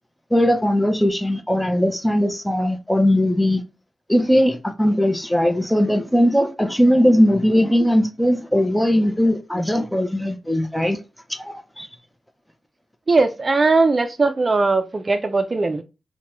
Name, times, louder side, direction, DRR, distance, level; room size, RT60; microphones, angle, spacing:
voice 1, 0.3-3.6 4.1-11.0 11.3-11.9, equal, 5° left, 0.6 m, -19 dB
voice 2, 13.1-15.8, right 3 dB, 40° right, 0.4 m, -19 dB
4.5 x 2.2 x 2.9 m
cardioid pair, 75°, 0 cm